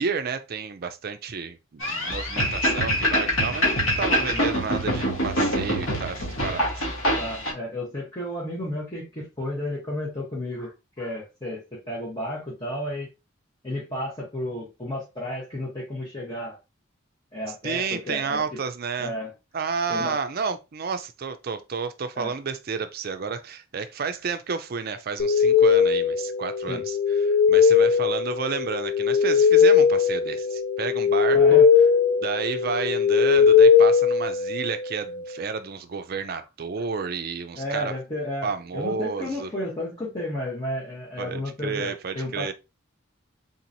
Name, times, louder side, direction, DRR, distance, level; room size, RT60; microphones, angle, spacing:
voice 1, 0.0-6.9 17.6-19.1 19.5-27.0 27.3-31.6 32.2-37.9 38.4-39.5 41.2-42.5, right 5 dB, 45° right, 0.4 m, -31 dB
sound 1, 1.8-7.5, equal, 75° left, 1.2 m, -25 dB
voice 2, 7.1-13.1 13.6-16.6 17.3-18.4 19.0-19.3 19.9-20.2 22.1-22.3 26.7-26.9 31.3-31.7 32.7-32.8 37.5-42.5, left 1 dB, 20° left, 1.1 m, -32 dB
sound 2, 25.2-34.9, left 6 dB, 50° left, 0.3 m, -19 dB
3.9 x 2.9 x 2.6 m
head